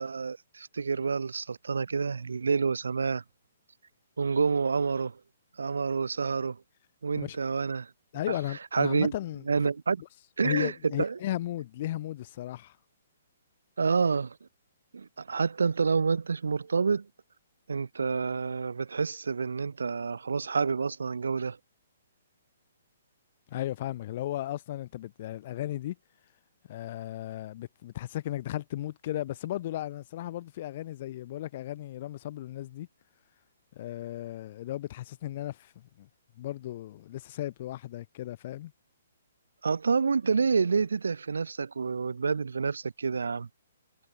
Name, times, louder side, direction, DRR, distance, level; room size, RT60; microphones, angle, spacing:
voice 1, 0.0-3.2 4.2-5.2 5.6-6.6 7.0-7.9 8.3-8.4 8.7-9.1 9.5-10.0 10.4-11.2 13.8-14.4 14.9-17.1 17.7-21.6 39.6-43.5, right 5 dB, 75° right, 0.7 m, -28 dB
voice 2, 8.1-9.4 10.4-12.8 23.5-26.0 26.7-32.9 33.8-35.7 36.0-36.1 36.4-38.7, left 14 dB, 45° left, 3.0 m, -35 dB
hypercardioid pair, 135°, 0 cm